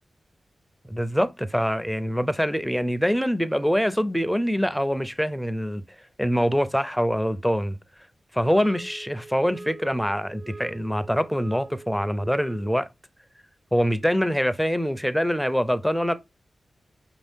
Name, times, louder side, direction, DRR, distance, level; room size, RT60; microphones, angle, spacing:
voice 1, 0.8-5.8 6.2-7.8 8.3-12.9 13.7-16.1, equal, ahead, 0.4 m, -24 dB
sound 1, 8.5-12.9, right 3 dB, 90° right, 1.3 m, -43 dB
5.6 x 2.7 x 3.5 m
wide cardioid pair, 110°, 0 cm